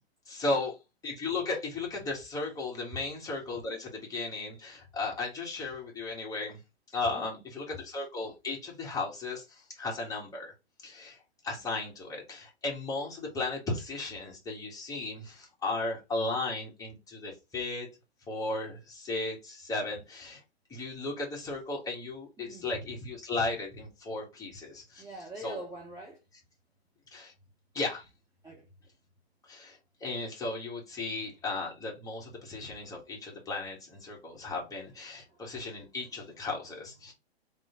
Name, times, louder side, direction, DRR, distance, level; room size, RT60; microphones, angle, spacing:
voice 1, 0.3-0.7 1.0-6.6 6.9-10.5 10.8-11.2 11.4-17.9 18.3-20.4 20.7-25.0 25.4-25.6 27.1-27.3 27.7-28.0 29.5-37.1, left 3 dB, 10° left, 1.9 m, -35 dB
voice 2, 22.4-22.7 25.0-26.2 28.4-28.7 35.3-35.4, right 1 dB, 10° right, 1.2 m, -44 dB
3.6 x 3.2 x 4.5 m
hypercardioid pair, 130°, 32 cm